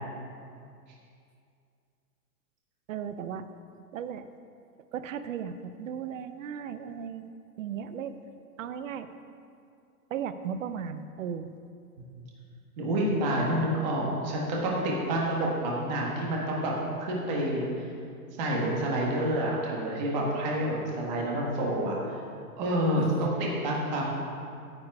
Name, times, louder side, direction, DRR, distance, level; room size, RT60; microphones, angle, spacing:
voice 1, 2.9-3.5 3.9-4.3 4.9-8.2 8.6-9.1 10.1-11.5 23.0-23.3, right 8 dB, 55° right, 11 dB, 0.6 m, -36 dB
voice 2, 12.8-16.7 17.0-17.6 18.4-22.2 22.6-24.2, right 1 dB, 30° right, -3 dB, 1.5 m, -28 dB
9.7 x 8.5 x 4.7 m, 2.4 s
hypercardioid pair, 175°, 47 cm